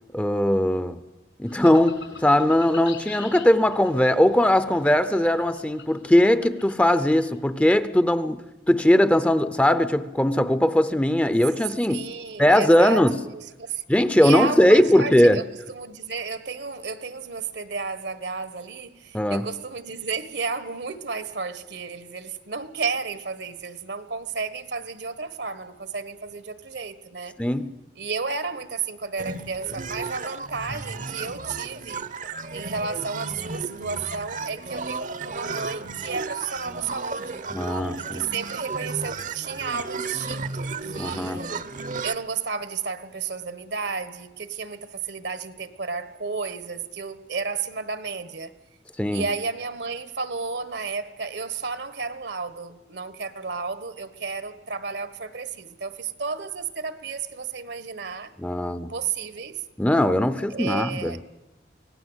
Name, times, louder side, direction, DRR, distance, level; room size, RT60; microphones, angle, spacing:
voice 1, 0.1-1.0 1.4-8.4 8.7-12.0 12.4-13.1 13.9-15.4 19.1-19.5 27.4-27.7 37.5-38.3 41.0-41.4 49.0-49.2 58.4-58.9 59.8-61.2, left 1 dB, 5° left, 0.7 m, -20 dB
sound 1, 1.5-7.3, left 5 dB, 80° left, 5.2 m, -44 dB
voice 2, 11.9-13.8 14.2-27.3 27.9-32.1 32.5-37.4 38.0-41.5 42.0-48.6 49.1-58.3 58.9-59.6 60.5-61.2, right 5 dB, 65° right, 1.3 m, -32 dB
sound 2, 29.2-42.1, right 4 dB, 45° right, 0.9 m, -34 dB
25.0 x 18.0 x 8.1 m
head